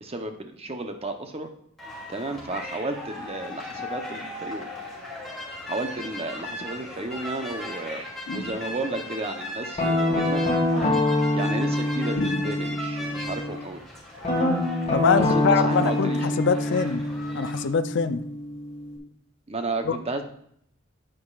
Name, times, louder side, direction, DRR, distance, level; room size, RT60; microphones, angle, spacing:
voice 1, 0.0-1.5 2.1-4.7 5.7-8.0 8.3-10.4 11.3-13.8 15.3-16.4 19.5-20.2, right 2 dB, 30° right, 6 dB, 0.8 m, -32 dB
sound 1, 1.8-17.6, left 1 dB, ahead, 2.7 m, -38 dB
sound 2, 8.3-9.1 12.2-13.1, left 1 dB, 80° left, 1.1 m, -35 dB
Guitar, 9.8-13.6 14.2-19.0, left 1 dB, 30° left, 2.1 m, -25 dB
voice 2, 14.9-17.0 17.3-18.2 19.9-20.0, left 5 dB, 55° left, 10 dB, 0.5 m, -24 dB
9.2 x 8.8 x 2.4 m, 0.68 s
head